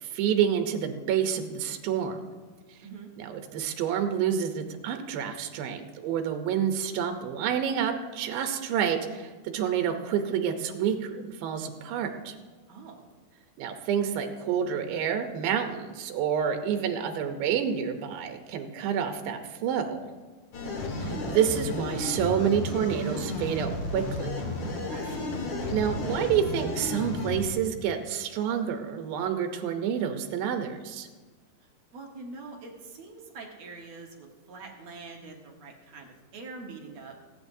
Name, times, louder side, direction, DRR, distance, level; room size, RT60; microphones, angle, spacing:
voice 1, 0.0-2.2 3.2-12.3 13.6-20.0 21.0-24.3 25.7-31.1, right 8 dB, 85° right, 6 dB, 2.6 m, -28 dB
voice 2, 12.7-13.1 24.9-25.4 31.6-37.1, right 3 dB, 60° right, 0 dB, 2.2 m, -44 dB
sound 1, 20.5-27.4, left 2 dB, 60° left, 2.8 m, -32 dB
26.0 x 8.7 x 2.7 m, 1.3 s
omnidirectional pair, 4.0 m